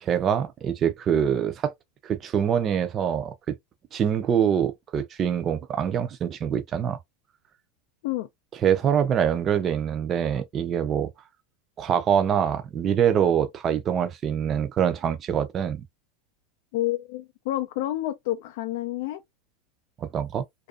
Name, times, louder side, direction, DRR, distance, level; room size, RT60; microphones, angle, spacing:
voice 1, 0.0-1.7 2.0-3.5 3.9-7.0 8.5-11.1 11.8-15.8 20.0-20.4, right 8 dB, 30° right, 0.4 m, -24 dB
voice 2, 16.7-19.2, left 15 dB, 65° left, 0.3 m, -29 dB
2.4 x 2.2 x 2.3 m
supercardioid pair, 145°, 0 cm